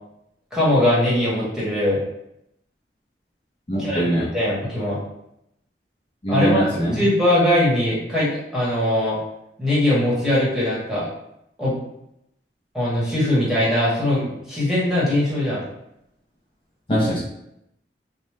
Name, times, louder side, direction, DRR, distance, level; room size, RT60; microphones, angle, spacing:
voice 1, 0.5-2.0 3.8-5.0 6.3-6.7 6.9-9.2 9.6-11.1 11.6-11.8 12.7-15.6, left 1 dB, 5° right, -8 dB, 1.0 m, -21 dB
voice 2, 3.7-4.3 6.2-7.0 16.9-17.2, equal, 30° left, -7 dB, 0.6 m, -22 dB
3.2 x 2.1 x 3.2 m, 0.81 s
head